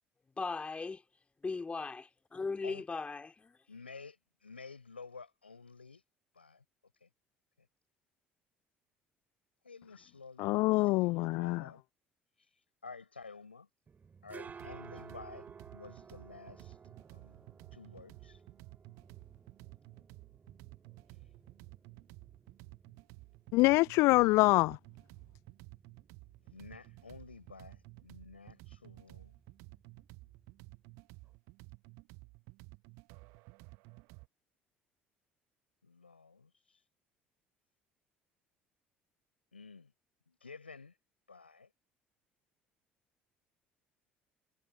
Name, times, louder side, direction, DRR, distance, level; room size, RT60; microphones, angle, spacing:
voice 1, 0.4-1.0 1.4-3.5, left 4 dB, 20° left, 2.6 m, -38 dB
voice 2, 3.7-6.0 6.3-6.6 7.0-7.1 7.6-7.7 9.6-11.8 12.8-13.7 14.2-16.8 17.1-18.4 26.5-29.4 35.8-36.8 39.5-39.9 40.3-40.9 41.3-41.7, left 4 dB, 85° left, 6.5 m, -52 dB
voice 3, 10.4-11.6 23.5-24.8, left 22 dB, 55° left, 0.4 m, -25 dB
sound 1, 13.9-31.3, right 6 dB, 30° right, 2.4 m, -56 dB
sound 2, 14.4-34.3, right 28 dB, 60° right, 1.3 m, -54 dB
figure-of-eight pair, 55°, 6 cm